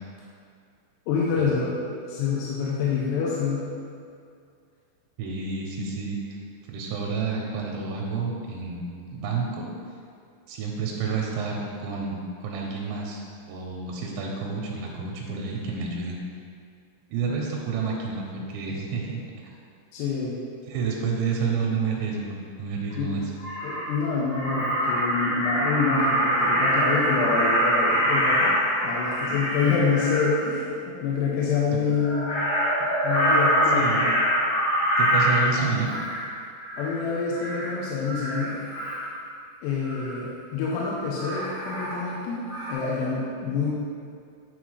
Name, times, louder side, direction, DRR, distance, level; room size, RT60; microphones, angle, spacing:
voice 1, 1.1-1.7 2.1-3.7 19.9-20.4 23.0-23.2 23.6-28.5 28.8-32.4 33.0-34.0 36.8-38.6 39.6-43.7, left 5 dB, 80° left, -6 dB, 2.7 m, -27 dB
voice 2, 5.2-6.4 6.7-9.7 10.5-13.2 13.5-16.2 17.1-19.2 20.7-23.2 31.7-31.8 33.7-34.1 35.0-35.9, right 5 dB, 85° right, -1 dB, 2.9 m, -29 dB
Crow, 22.9-23.0 23.4-23.9 24.3-30.3 31.9-36.2 36.6-37.0 37.3-37.7 38.0-39.1 39.8-40.1 41.2-42.2 42.5-42.7, equal, 60° left, 2.0 m, -24 dB
9.3 x 4.0 x 3.2 m, 2.3 s
omnidirectional pair, 5.1 m